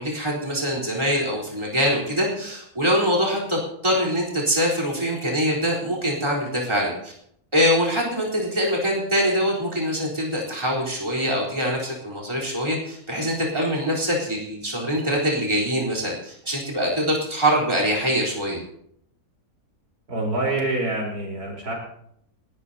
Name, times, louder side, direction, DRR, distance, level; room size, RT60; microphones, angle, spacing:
voice 1, 0.0-7.1 7.5-18.6, equal, 20° right, -2 dB, 4.1 m, -24 dB
voice 2, 20.1-21.7, right 2 dB, 85° right, -1 dB, 4.7 m, -26 dB
29.5 x 12.0 x 2.8 m, 0.69 s
omnidirectional pair, 1.6 m